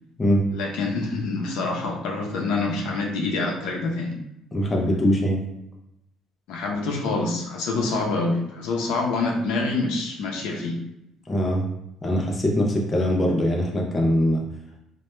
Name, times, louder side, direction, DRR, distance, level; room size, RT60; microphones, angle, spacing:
voice 1, 0.5-4.2 6.5-10.8, left 3 dB, 85° left, 0 dB, 0.5 m, -26 dB
voice 2, 4.5-5.4 11.3-11.6 12.0-14.4, equal, 15° left, -1 dB, 0.3 m, -22 dB
2.1 x 2.1 x 3.0 m, 0.84 s
cardioid pair, 175°, 0 cm